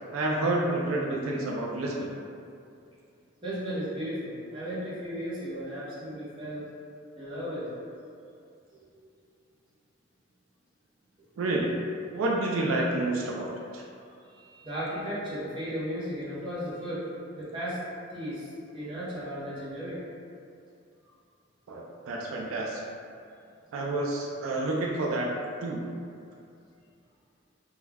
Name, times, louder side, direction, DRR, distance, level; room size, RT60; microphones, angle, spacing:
voice 1, 0.1-2.1 11.4-11.7 12.1-13.8 21.7-22.9 23.7-25.3 25.6-25.8, right 2 dB, 80° right, -2 dB, 0.3 m, -29 dB
voice 2, 3.4-6.6 7.1-7.7 14.0-17.0 17.3-17.8 18.1-20.0, equal, 25° right, -10 dB, 0.7 m, -35 dB
2.3 x 2.1 x 3.2 m, 2.4 s
head